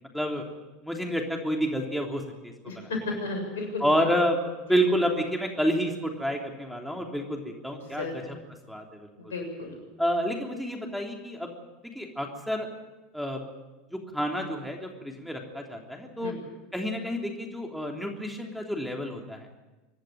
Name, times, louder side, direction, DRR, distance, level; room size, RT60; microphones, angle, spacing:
voice 1, 0.8-2.2 2.7-2.9 3.8-8.1 8.7-8.8 10.0-11.5 11.9-12.7 13.1-13.4 13.9-16.3 16.7-19.5, equal, ahead, 1 dB, 3.3 m, -29 dB
voice 2, 2.6-4.1 4.7-4.8 7.8-8.3 9.2-9.8 16.2-16.3, left 3 dB, 80° left, 2 dB, 7.0 m, -34 dB
25.0 x 11.5 x 9.2 m, 1.1 s
hypercardioid pair, 85°, 0 cm